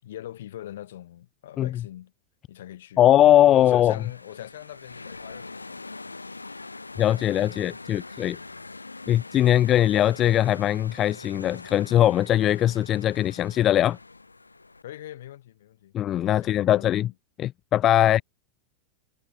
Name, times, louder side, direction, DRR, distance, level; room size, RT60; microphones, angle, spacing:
voice 1, 0.0-2.1 2.5-3.1 3.5-6.2 8.2-8.6 14.8-15.9 16.2-17.1 18.0-18.2, left 12 dB, 60° left, 4.2 m, -42 dB
voice 2, 3.0-3.9 7.0-8.4 9.1-14.0 15.9-17.1 17.4-18.2, left 12 dB, 30° left, 0.6 m, -20 dB
sound 1, 3.5-14.8, left 3 dB, 80° left, 7.0 m, -43 dB
figure-of-eight pair, 90°, 0 cm